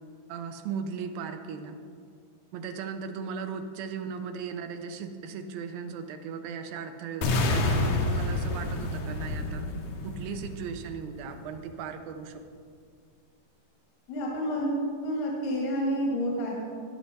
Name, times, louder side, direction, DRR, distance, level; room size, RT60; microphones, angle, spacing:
voice 1, 0.3-1.8 2.5-9.7 10.0-12.4, right 6 dB, 75° right, 7 dB, 2.4 m, -37 dB
sound 1, 7.2-11.2, left 2 dB, 65° left, 1.8 m, -29 dB
voice 2, 14.1-14.7 15.0-16.5, equal, 85° left, -3 dB, 3.7 m, -29 dB
13.5 x 10.5 x 4.2 m, 2.1 s
omnidirectional pair, 4.4 m